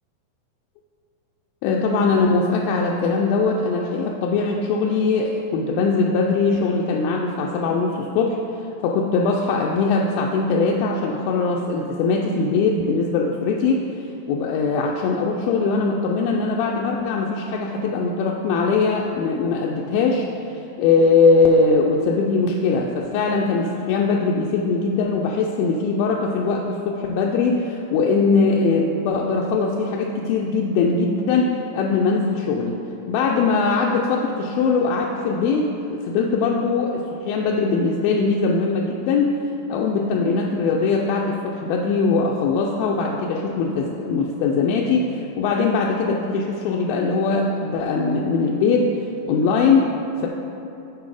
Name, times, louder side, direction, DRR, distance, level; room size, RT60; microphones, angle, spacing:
voice 1, 1.6-13.8 14.3-32.8 33.1-39.3 39.7-48.9 49.3-50.3, left 4 dB, 85° left, -1 dB, 2.4 m, -21 dB
8.2 x 4.7 x 4.8 m, 2.9 s
omnidirectional pair, 4.2 m